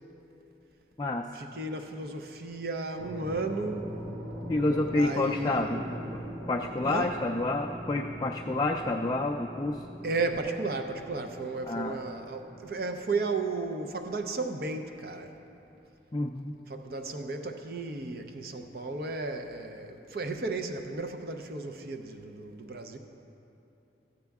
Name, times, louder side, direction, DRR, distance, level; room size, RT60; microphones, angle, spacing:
voice 1, 1.3-3.9 4.9-6.2 6.8-7.1 10.0-15.3 16.7-23.0, right 3 dB, 55° right, 6 dB, 0.6 m, -34 dB
sound 1, 2.9-12.8, equal, 85° right, 2.1 m, -42 dB
voice 2, 4.5-5.8 6.1-6.2 6.5-9.8 11.7-12.0 16.1-16.5, left 2 dB, 20° left, 0 dB, 0.3 m, -29 dB
14.0 x 8.2 x 3.5 m, 2.9 s
head